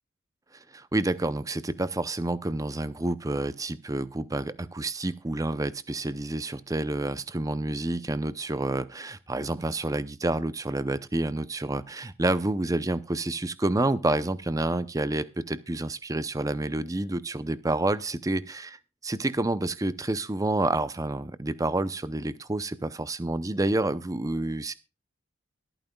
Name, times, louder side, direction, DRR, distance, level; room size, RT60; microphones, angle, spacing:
voice 1, 0.7-18.8 19.0-24.7, right 2 dB, 15° right, 15 dB, 0.6 m, -29 dB
23.0 x 9.0 x 2.3 m, 0.29 s
head